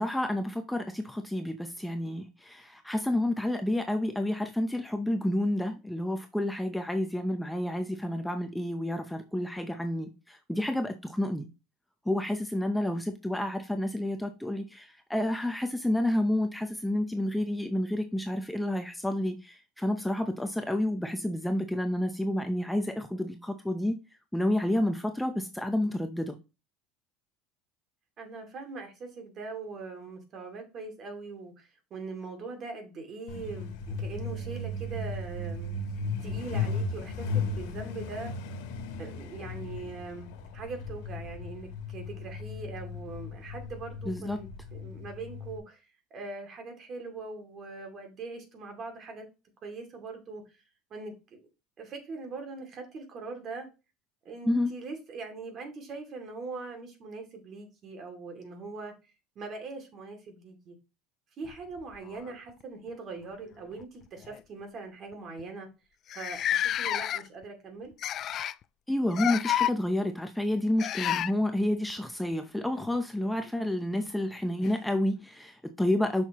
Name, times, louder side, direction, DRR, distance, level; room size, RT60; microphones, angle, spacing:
voice 1, 0.0-11.5 12.1-24.0 24.3-26.4 44.1-44.4 54.4-54.7 68.9-76.2, left 1 dB, 5° left, 0.7 m, -30 dB
voice 2, 28.2-35.7 36.2-38.3 39.0-45.8 46.1-49.2 49.6-50.4 50.9-51.4 51.8-53.7 54.2-58.9 59.4-60.8 61.4-65.7 66.1-67.9, right 3 dB, 45° right, 2.6 m, -41 dB
Truck, 33.3-45.6, left 3 dB, 85° left, 1.6 m, -36 dB
sound 1, 61.4-62.6 63.7-63.8 64.2-64.4 65.1-65.2 65.4-65.5 66.1-67.4 68.0-68.6 69.1-69.7 70.8-71.3 73.5-73.6 74.6-74.7, left 11 dB, 45° left, 0.3 m, -30 dB
6.9 x 5.9 x 3.0 m
supercardioid pair, 115°, 0 cm